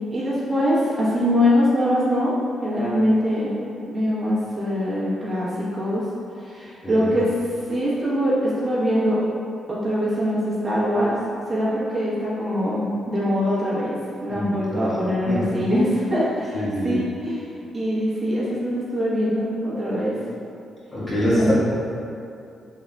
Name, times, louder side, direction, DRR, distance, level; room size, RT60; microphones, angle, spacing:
voice 1, 0.1-2.3 2.6-6.0 6.4-7.3 7.7-9.2 9.7-11.2 11.5-20.2 21.4-21.5, equal, 30° right, -9 dB, 1.2 m, -23 dB
voice 2, 6.8-7.1 14.3-15.5 16.5-17.0 20.9-21.5, equal, 30° left, -8 dB, 1.4 m, -25 dB
3.7 x 3.5 x 2.3 m, 2.6 s
supercardioid pair, 65°, 0 cm